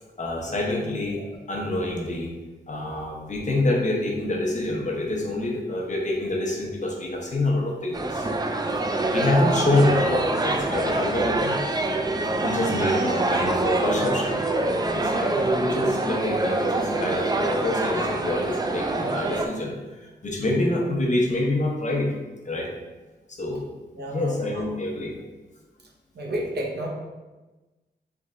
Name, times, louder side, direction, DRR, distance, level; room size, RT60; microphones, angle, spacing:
voice 1, 0.2-1.2 1.5-2.3 2.7-8.2 9.1-11.6 12.4-19.7 20.0-22.1 22.4-22.7 23.3-23.6 24.1-25.1, left 2 dB, 40° left, -1 dB, 0.8 m, -26 dB
voice 2, 0.8-1.3 12.7-13.0 23.9-24.6 26.1-26.9, right 1 dB, 65° right, -2 dB, 0.9 m, -32 dB
sound 1, 7.9-19.5, right 2 dB, 20° right, 0.3 m, -25 dB
3.5 x 3.2 x 3.7 m, 1.2 s
wide cardioid pair, 100°, 18 cm